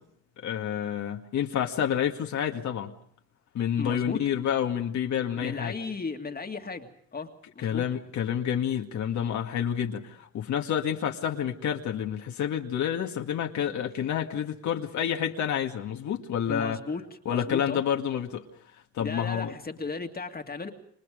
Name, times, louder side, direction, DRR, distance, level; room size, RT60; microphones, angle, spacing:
voice 1, 0.4-2.9 3.5-5.7 7.6-16.8 17.3-18.4 18.9-19.5, left 9 dB, 70° left, 3 dB, 2.0 m, -29 dB
voice 2, 3.8-4.2 5.4-7.3 7.6-7.8 16.5-17.0 17.3-17.8 19.0-20.7, left 4 dB, 30° left, 4 dB, 2.3 m, -35 dB
29.0 x 24.0 x 5.2 m, 0.62 s
cardioid pair, 90°, 30 cm